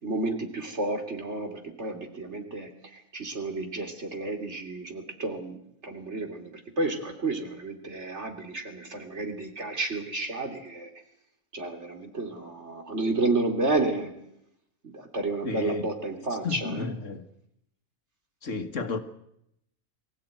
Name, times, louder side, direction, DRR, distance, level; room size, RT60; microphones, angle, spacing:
voice 1, 0.0-10.9 11.5-14.1 14.8-16.9, right 2 dB, 55° right, 3.4 m, -31 dB
voice 2, 15.4-15.9 16.4-17.3 18.4-19.0, left 4 dB, 65° left, 1.9 m, -32 dB
24.0 x 16.0 x 9.1 m
omnidirectional pair, 1.4 m